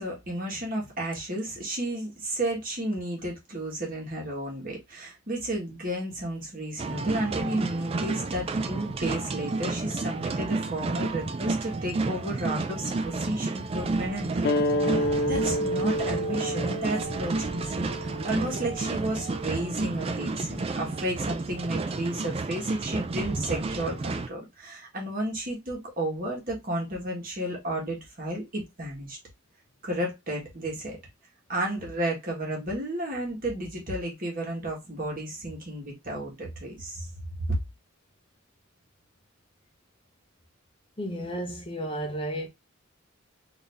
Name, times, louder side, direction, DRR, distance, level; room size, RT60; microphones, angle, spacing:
voice 1, 0.0-14.5 14.8-29.2 29.8-31.0 31.5-37.1 37.4-37.6, right 1 dB, 45° right, 1.6 m, -32 dB
sound 1, 6.8-24.3, right 3 dB, 30° right, 0.3 m, -31 dB
sound 2, 14.4-19.6, equal, 50° left, 0.3 m, -29 dB
voice 2, 41.0-42.5, right 1 dB, 25° left, 0.7 m, -32 dB
3.9 x 2.7 x 3.4 m
head